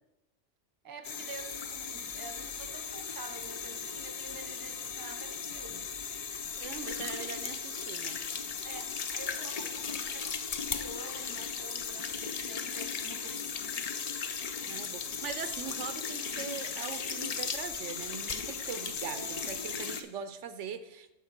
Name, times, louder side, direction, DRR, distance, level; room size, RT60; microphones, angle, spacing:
voice 1, 0.8-5.9 8.6-13.9 19.1-19.8, right 4 dB, 20° right, 6 dB, 0.7 m, -48 dB
sound 1, 1.0-20.0, left 6 dB, 50° left, 0.5 m, -37 dB
voice 2, 6.6-8.2 14.7-21.1, right 8 dB, 80° right, 11 dB, 0.9 m, -41 dB
7.3 x 6.7 x 5.7 m, 0.98 s
omnidirectional pair, 1.2 m